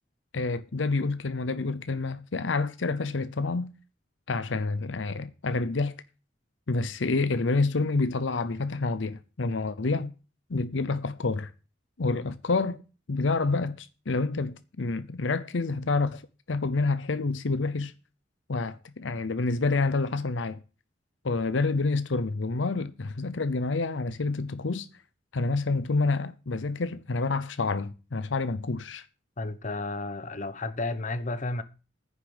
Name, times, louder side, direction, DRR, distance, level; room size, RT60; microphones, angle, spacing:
voice 1, 0.3-3.7 4.3-5.9 6.7-10.1 10.5-11.5 12.0-12.8 13.1-16.2 16.5-17.9 18.5-20.6 21.2-24.9 25.3-29.0, left 3 dB, 75° left, 0.7 m, -28 dB
voice 2, 29.4-31.6, left 2 dB, 40° left, 1.0 m, -32 dB
9.9 x 6.8 x 8.7 m
head